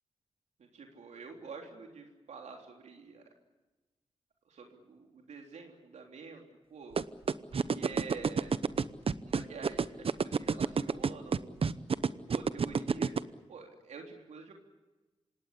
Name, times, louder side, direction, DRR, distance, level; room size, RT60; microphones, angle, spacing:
voice 1, 0.6-3.2 4.5-6.4 6.7-7.0 7.5-8.5 9.2-11.6 12.3-13.1 13.5-14.5, right 5 dB, 90° right, 2 dB, 3.6 m, -47 dB
sound 1, 7.0-13.2, right 5 dB, 55° right, 0.9 m, -28 dB
26.0 x 18.5 x 8.4 m, 1.1 s
cardioid pair, 75°, 11 cm